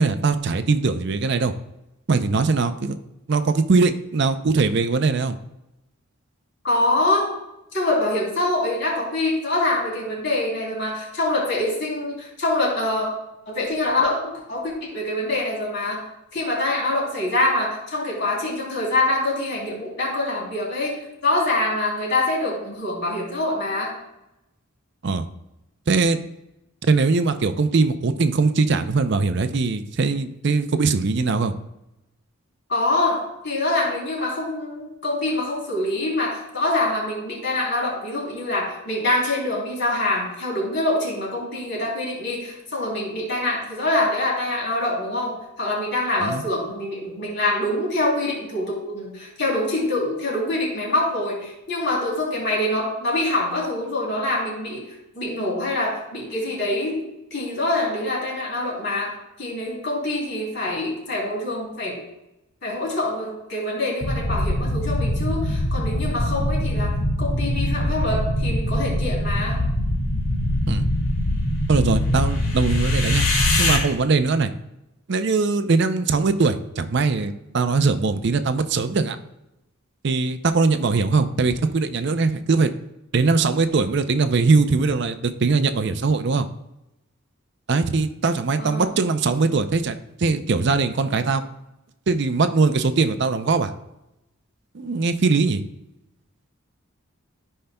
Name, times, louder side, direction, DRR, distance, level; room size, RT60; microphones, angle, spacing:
voice 1, 0.0-1.5 2.1-3.0 3.3-5.4 25.0-25.3 25.9-26.2 26.8-31.5 46.2-46.4 70.7-70.9 71.7-73.3 73.6-74.5 75.1-79.2 80.0-82.7 83.1-86.5 87.7-91.4 92.1-93.7 94.7-95.6, right 4 dB, 55° right, 10 dB, 0.5 m, -21 dB
voice 2, 6.6-7.3 7.7-13.1 13.5-16.0 16.3-23.9 32.7-54.9 55.1-57.0 57.3-62.0 62.6-69.6 88.6-88.9, left 2 dB, 55° left, -3 dB, 3.1 m, -25 dB
sound 1, 64.0-73.8, left 1 dB, 85° left, 1.8 m, -23 dB
14.0 x 5.5 x 2.2 m, 0.90 s
head